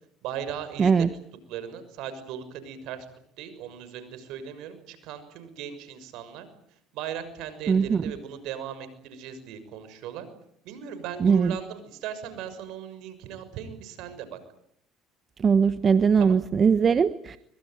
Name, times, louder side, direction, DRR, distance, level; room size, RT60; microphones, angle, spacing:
voice 1, 0.2-1.1 1.5-3.1 3.4-6.5 6.9-10.3 10.6-14.4 16.2-16.4, right 9 dB, 75° right, 12 dB, 6.3 m, -38 dB
voice 2, 0.8-1.1 7.7-8.0 11.2-11.6 15.4-17.4, right 6 dB, 35° right, 12 dB, 1.2 m, -20 dB
24.5 x 22.5 x 9.4 m, 0.71 s
supercardioid pair, 90°, 0 cm